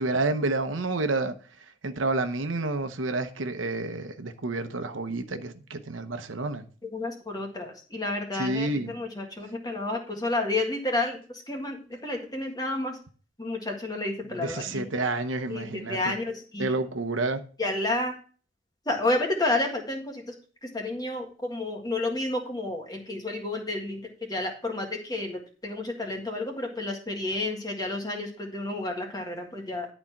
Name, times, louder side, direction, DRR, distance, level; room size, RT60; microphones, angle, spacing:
voice 1, 0.0-1.4 1.8-6.6 8.3-8.9 14.3-16.2 16.6-17.4, right 2 dB, 90° right, 0.9 m, -29 dB
voice 2, 6.9-11.2 11.5-13.0 13.4-14.8 15.5-16.7 17.6-18.1 18.8-20.3 20.6-24.0 24.3-29.9, left 2 dB, 20° left, 1.7 m, -30 dB
11.0 x 4.4 x 5.8 m
head